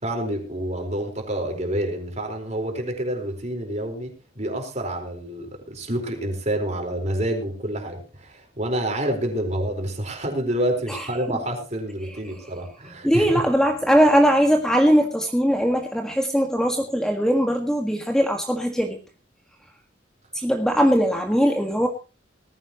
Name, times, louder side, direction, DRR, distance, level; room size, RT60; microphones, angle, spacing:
voice 1, 0.0-13.5, right 1 dB, 35° right, 4 dB, 4.4 m, -28 dB
voice 2, 13.0-19.0 20.3-21.9, equal, 5° left, 3 dB, 1.7 m, -20 dB
19.0 x 15.5 x 3.0 m, 0.32 s
head